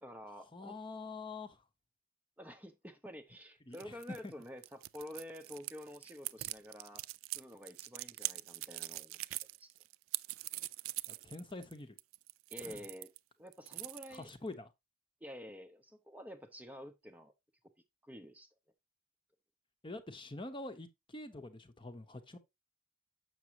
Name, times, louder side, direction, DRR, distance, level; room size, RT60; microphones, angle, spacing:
voice 1, 0.0-0.8 2.4-7.0 7.3-9.2 9.6-9.7 12.5-13.1 13.4-14.3 15.2-17.3 18.0-18.5, left 1 dB, 10° right, 0.6 m, -49 dB
voice 2, 0.5-1.6 3.7-4.3 11.2-11.9 12.6-12.8 14.1-14.7 19.8-22.4, left 2 dB, 25° left, 0.8 m, -45 dB
sound 1, 3.7-13.2 13.5-14.5, right 19 dB, 80° right, 0.3 m, -42 dB
7.3 x 6.1 x 2.8 m
head